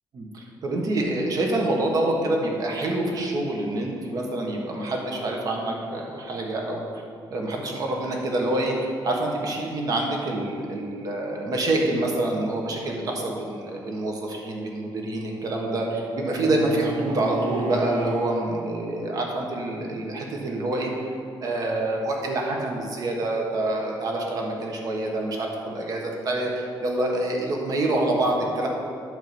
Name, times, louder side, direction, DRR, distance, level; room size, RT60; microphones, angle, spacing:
voice 1, 0.1-7.0 7.3-8.8 9.0-20.9 21.4-28.7, right 2 dB, 45° right, 0 dB, 1.3 m, -26 dB
Bowed string instrument, 14.6-18.4, right 2 dB, 65° right, 0.8 m, -33 dB
9.4 x 3.7 x 7.0 m, 2.3 s
cardioid pair, 165°, 9 cm